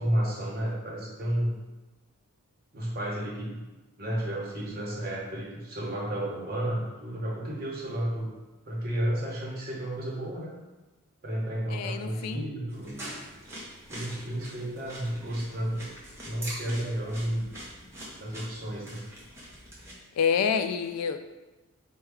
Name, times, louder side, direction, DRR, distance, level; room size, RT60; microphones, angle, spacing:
voice 1, 0.0-1.5 2.7-3.6 4.0-8.3 8.7-10.6 11.2-13.0 13.9-15.9 16.2-17.5 18.2-19.0, right 1 dB, 40° right, -4 dB, 0.9 m, -32 dB
voice 2, 11.7-12.5 20.2-21.2, left 6 dB, 90° left, 12 dB, 0.3 m, -27 dB
sound 1, 12.7-19.9, right 1 dB, 10° right, 0.7 m, -43 dB
4.3 x 2.2 x 3.5 m, 1.1 s
head